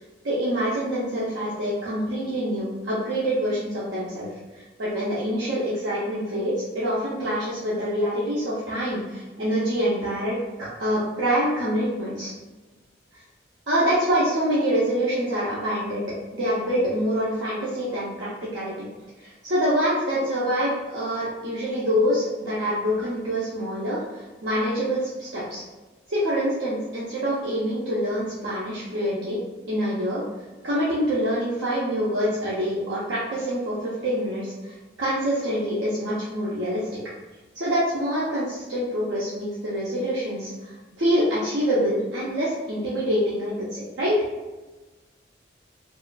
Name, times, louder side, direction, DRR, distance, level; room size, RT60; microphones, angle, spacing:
voice 1, 0.2-4.3 4.5-12.3 13.7-18.7 19.2-25.6 26.1-29.4 29.7-30.2 30.6-37.0 37.5-44.2, equal, 75° right, -8 dB, 0.6 m, -26 dB
3.0 x 2.3 x 2.2 m, 1.2 s
head